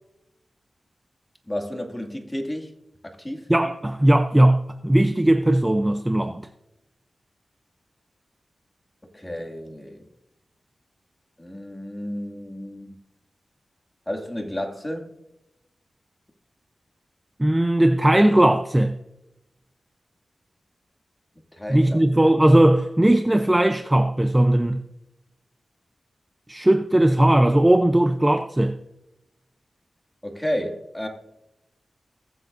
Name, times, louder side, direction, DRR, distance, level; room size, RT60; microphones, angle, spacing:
voice 1, 1.5-2.7 3.0-3.4 9.1-10.1 11.4-12.9 14.1-15.1 21.6-22.0 30.2-31.1, equal, 15° left, 2.3 m, -31 dB
voice 2, 3.5-6.5 17.4-19.0 21.7-24.8 26.5-28.8, right 1 dB, 15° right, 0.6 m, -18 dB
21.0 x 7.8 x 2.6 m
cardioid pair, 60°, 0 cm